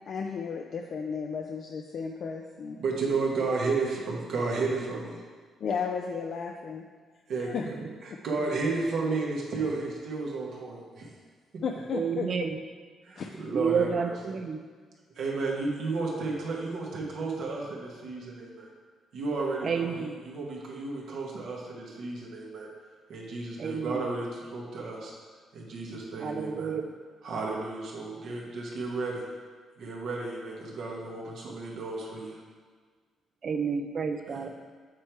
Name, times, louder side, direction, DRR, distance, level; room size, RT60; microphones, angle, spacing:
voice 1, 0.1-2.8 5.6-6.8 7.4-7.6 11.6-12.3 13.2-13.3, left 6 dB, 60° left, 2 dB, 0.4 m, -33 dB
voice 2, 2.8-5.2 7.3-7.5 8.0-11.1 11.5-11.6 13.0-14.4 15.1-18.7 19.1-22.7 23.1-25.1 25.5-26.7 27.2-29.3 29.8-32.4 34.3-34.5, right 3 dB, 70° right, -3 dB, 1.5 m, -33 dB
voice 3, 11.9-12.6 13.5-14.6 19.6-20.2 23.6-24.0 26.2-26.9 33.4-34.5, right 6 dB, 50° right, 6 dB, 0.4 m, -30 dB
8.2 x 3.4 x 4.6 m, 1.6 s
cardioid pair, 90°, 0 cm